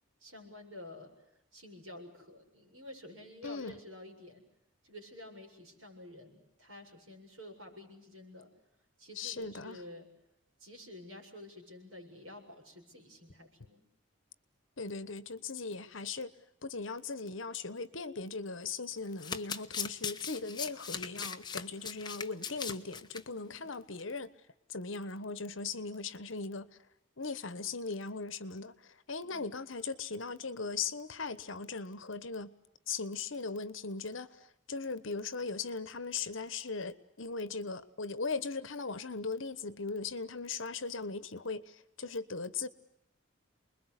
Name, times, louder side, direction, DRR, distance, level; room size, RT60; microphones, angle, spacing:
voice 1, 0.2-1.1 1.5-4.4 4.8-8.5 9.0-10.1 10.6-13.8 23.3-23.7 29.2-29.5, left 1 dB, 70° right, 7.7 m, -50 dB
voice 2, 3.4-3.8 9.2-9.8 14.8-16.3 16.6-24.3 24.7-26.7 27.2-32.5 32.9-42.7, left 4 dB, 70° left, 1.2 m, -39 dB
Domestic sounds home sounds, 18.9-23.2 23.5-23.7 24.0-24.1, left 6 dB, 20° left, 1.1 m, -39 dB
29.0 x 21.5 x 8.3 m
head